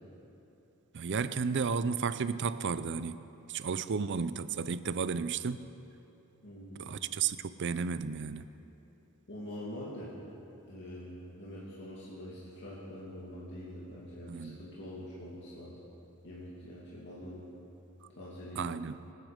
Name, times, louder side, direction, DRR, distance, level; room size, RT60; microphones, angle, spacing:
voice 1, 0.9-3.2 3.5-5.7 6.8-8.4 14.3-14.6 18.6-18.9, right 5 dB, 55° right, 14 dB, 0.5 m, -33 dB
voice 2, 6.4-6.9 9.3-10.2 10.7-15.8 16.2-17.4 18.2-18.8, equal, 55° left, -7 dB, 2.5 m, -44 dB
25.5 x 9.6 x 5.1 m, 2.9 s
head